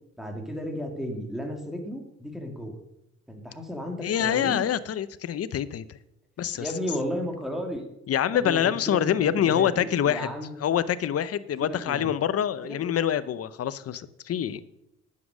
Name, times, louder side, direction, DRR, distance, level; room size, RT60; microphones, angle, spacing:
voice 1, 0.2-2.8 3.3-4.6 6.5-7.9 8.3-10.6 11.6-12.1 12.6-12.8, equal, ahead, 2 dB, 2.6 m, -34 dB
voice 2, 4.0-6.0 6.4-6.7 8.1-10.3 10.6-14.6, left 9 dB, 50° left, 15 dB, 0.7 m, -26 dB
9.6 x 7.5 x 6.3 m, 0.83 s
cardioid pair, 90°, 30 cm